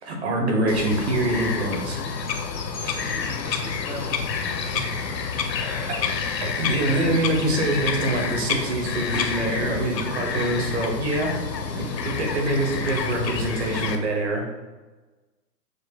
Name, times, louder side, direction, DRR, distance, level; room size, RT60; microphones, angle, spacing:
voice 1, 0.0-2.0 2.9-3.0 4.7-5.0 6.4-11.3 11.8-14.4, right 2 dB, 40° right, 1 dB, 1.0 m, -25 dB
Bird vocalization bird call bird song, 0.7-14.0, left 5 dB, 85° left, 0.7 m, -28 dB
voice 2, 3.0-4.5 5.6-6.3, left 1 dB, 30° left, -4 dB, 0.4 m, -40 dB
6.1 x 2.3 x 2.8 m, 1.2 s
hypercardioid pair, 140°, 49 cm